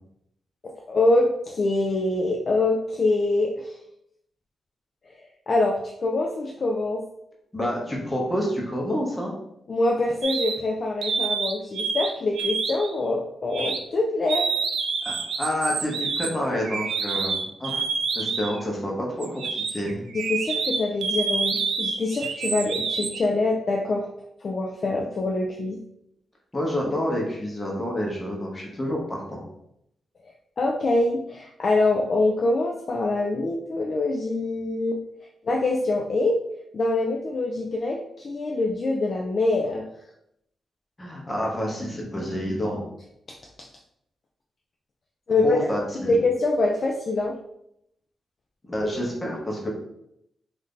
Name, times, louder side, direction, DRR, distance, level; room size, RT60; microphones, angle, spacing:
voice 1, 0.9-3.7 5.2-7.0 9.7-14.5 20.1-24.1 24.4-25.8 30.6-35.0 35.4-36.4 36.7-39.9 45.3-45.7 46.0-47.4, left 2 dB, 40° left, -1 dB, 0.3 m, -24 dB
voice 2, 7.5-9.3 15.0-17.8 18.1-20.0 26.5-29.4 41.0-42.8 45.4-46.2 48.7-49.7, equal, 15° left, -2 dB, 0.8 m, -28 dB
sound 1, 10.2-10.6 11.0-12.1 12.4-12.9 13.5-13.8 14.3-18.6 19.2-23.2, right 5 dB, 85° right, 0.3 m, -27 dB
2.7 x 2.4 x 3.5 m, 0.78 s
wide cardioid pair, 145°, 0 cm